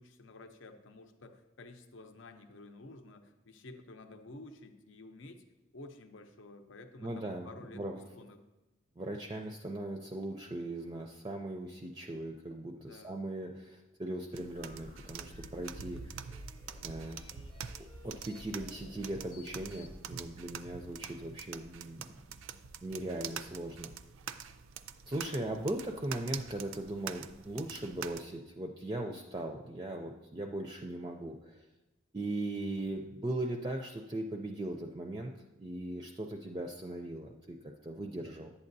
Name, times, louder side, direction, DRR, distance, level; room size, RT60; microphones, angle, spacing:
voice 1, 0.0-5.5 5.7-8.4 12.8-13.2 25.2-25.4, left 2 dB, 75° left, 7 dB, 0.7 m, -52 dB
voice 2, 7.0-8.1 9.0-16.2 16.8-17.3 18.0-22.1 22.5-23.9 25.1-31.6 32.1-35.3 35.6-38.5, right 1 dB, 20° right, 2 dB, 0.4 m, -39 dB
sound 1, 14.3-28.2, right 7 dB, 85° right, 0.4 m, -46 dB
sound 2, 14.5-20.0, left 1 dB, 25° left, 0.6 m, -52 dB
11.0 x 8.5 x 2.6 m, 1.0 s
head